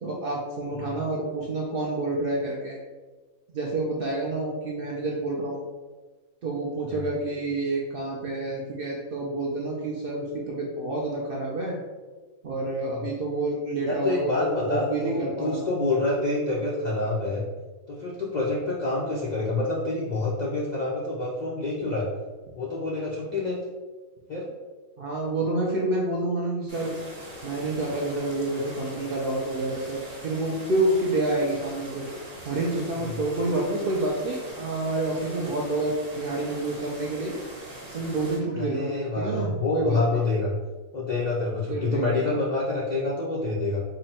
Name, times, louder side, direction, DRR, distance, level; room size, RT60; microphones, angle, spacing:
voice 1, 0.0-2.8 3.5-5.6 6.4-11.8 12.4-15.6 25.0-26.9 27.4-32.0 32.4-37.4 37.9-38.9 39.2-40.2 41.7-42.3, right 2 dB, 65° right, -2 dB, 0.5 m, -28 dB
voice 2, 13.8-17.4 17.9-22.1 22.5-23.6 24.3-24.5 33.0-33.2 38.6-40.5 40.9-43.8, left 2 dB, 80° left, -5 dB, 0.4 m, -27 dB
sound 1, 26.7-38.4, right 1 dB, 45° right, 1.1 m, -42 dB
3.8 x 2.1 x 4.1 m, 1.3 s
omnidirectional pair, 1.5 m